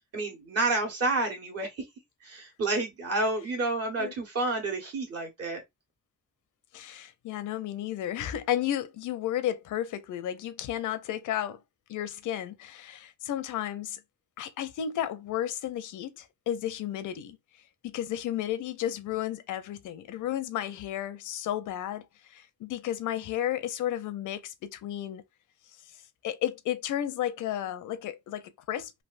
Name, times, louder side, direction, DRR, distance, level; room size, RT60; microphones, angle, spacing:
voice 1, 0.1-1.8 2.2-5.6, right 2 dB, 55° right, 1.4 m, -29 dB
voice 2, 6.7-11.6 11.9-14.0 14.4-17.4 17.8-25.2 26.2-28.9, left 11 dB, 90° left, 0.6 m, -33 dB
3.4 x 2.5 x 2.5 m
cardioid pair, 125°, 30 cm